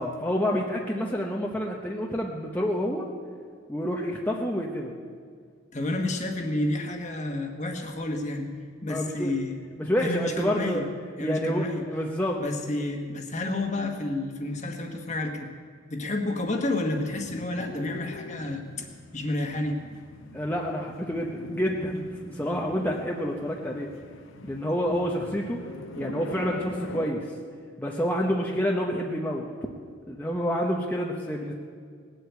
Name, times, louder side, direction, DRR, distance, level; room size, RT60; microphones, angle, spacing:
voice 1, 0.0-3.1 3.7-4.9 8.9-9.3 9.8-10.9 11.2-12.5 20.3-23.9 24.4-25.7 26.0-27.3 27.8-29.5 30.1-31.5, equal, 10° left, -1 dB, 0.9 m, -28 dB
voice 2, 5.7-8.5 8.8-9.6 10.0-10.9 11.2-11.8 12.4-15.5 15.9-18.9 19.1-19.8, left 2 dB, 35° left, 3 dB, 1.4 m, -30 dB
sound 1, 16.5-27.1, left 3 dB, 70° left, 0.9 m, -43 dB
19.0 x 8.1 x 8.1 m, 2.1 s
head